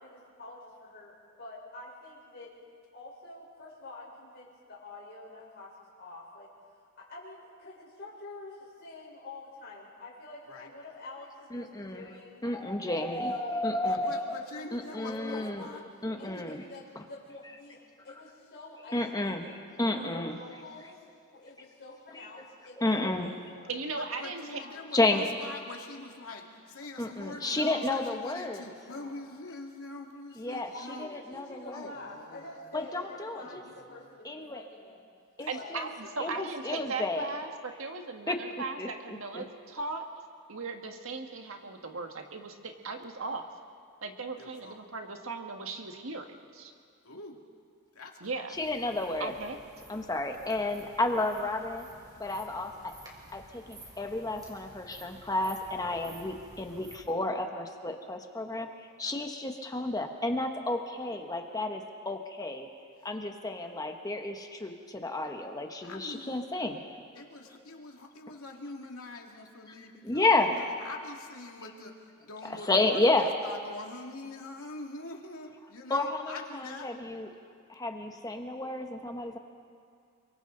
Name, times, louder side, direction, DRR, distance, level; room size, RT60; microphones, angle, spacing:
voice 1, 0.0-2.5 2.9-6.5 7.0-12.4 13.1-13.7 14.0-15.8 16.2-19.6 19.9-21.0 21.3-23.7 24.6-24.9 28.8-29.2 30.5-35.0 35.5-35.8, left 2 dB, 50° left, -5 dB, 4.5 m, -48 dB
voice 2, 11.5-12.1 12.4-14.4 14.7-16.6 18.9-20.4 22.1-22.3 22.8-23.3 24.9-25.3 27.0-28.6 30.4-31.9 32.7-33.6 34.2-34.6 35.4-35.9 36.2-37.3 38.3-38.4 38.8-39.4 48.5-49.3 49.9-51.8 52.2-52.9 53.3-58.7 59.0-62.7 63.0-66.8 70.0-70.5 72.7-73.3 75.9-76.2 76.5-77.3 77.7-79.4, left 2 dB, 20° left, 4 dB, 1.2 m, -31 dB
voice 3, 13.8-15.8 16.4-16.5 23.9-31.1 31.7-32.7 33.4-34.2 35.4-35.5 36.0-36.1 44.4-44.8 47.0-47.5 47.9-48.4 63.0-63.1 65.8-66.5 67.1-76.9, left 2 dB, 80° left, 1 dB, 2.4 m, -44 dB
voice 4, 23.7-24.6 35.5-40.1 40.5-43.5 44.0-46.7 48.2-48.5 49.2-49.6, right 3 dB, 70° right, 4 dB, 1.7 m, -38 dB
sound 1, 48.5-57.0, right 1 dB, 20° right, 3.8 m, -53 dB
29.5 x 23.0 x 4.0 m, 2.2 s
head